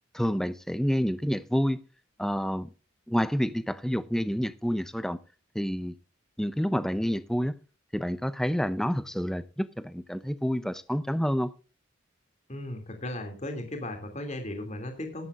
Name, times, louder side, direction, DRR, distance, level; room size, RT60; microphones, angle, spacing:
voice 1, 0.1-1.8 2.2-2.7 3.1-5.2 5.5-6.0 6.4-7.6 7.9-11.5, equal, ahead, 0.6 m, -28 dB
voice 2, 12.5-15.3, left 1 dB, 35° left, 2.6 m, -36 dB
16.5 x 13.5 x 2.5 m
head